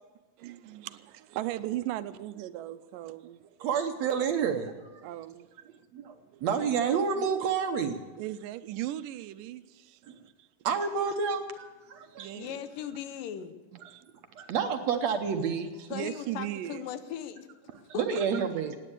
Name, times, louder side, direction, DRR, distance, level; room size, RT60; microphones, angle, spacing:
voice 1, 0.4-3.5 5.0-5.6 6.3-6.4 8.2-10.0 10.4-10.5 12.0-12.7 13.7-14.0 14.4-14.5 15.9-16.9, right 14 dB, 85° right, 2.2 m, -37 dB
voice 2, 3.6-5.1 5.9-8.0 10.0-10.2 10.6-12.3 13.8-13.9 14.3-15.9 17.7-18.8, right 6 dB, 65° right, 1.8 m, -29 dB
voice 3, 12.3-13.6 15.9-18.2, left 9 dB, 80° left, 2.6 m, -39 dB
17.5 x 9.8 x 8.3 m
omnidirectional pair, 3.9 m